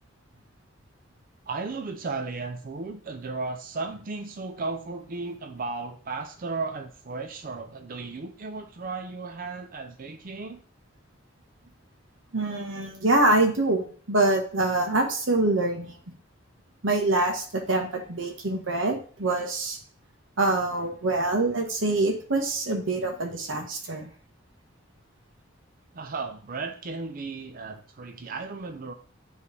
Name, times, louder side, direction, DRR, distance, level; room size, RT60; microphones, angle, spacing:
voice 1, 1.5-10.6 25.9-28.9, right 3 dB, 45° right, 6 dB, 0.5 m, -35 dB
voice 2, 12.3-16.0 16.8-19.8 20.4-24.1, right 2 dB, 85° right, 3 dB, 1.3 m, -25 dB
9.1 x 3.3 x 3.4 m, 0.43 s
head